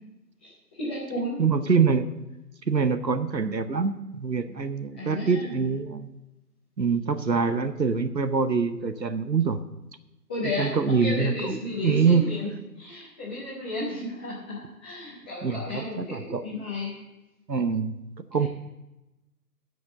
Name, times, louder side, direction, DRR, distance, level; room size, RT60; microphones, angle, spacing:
voice 1, 0.4-1.4 4.9-5.7 10.3-12.5 12.8-16.9, left 2 dB, 5° left, -11 dB, 1.1 m, -33 dB
voice 2, 1.4-2.1 2.7-6.2 6.8-9.6 10.6-12.6 15.4-16.4 17.5-18.0 18.3-18.5, right 5 dB, 90° right, 12 dB, 1.0 m, -25 dB
14.0 x 5.2 x 7.0 m, 0.99 s
figure-of-eight pair, 150°, 49 cm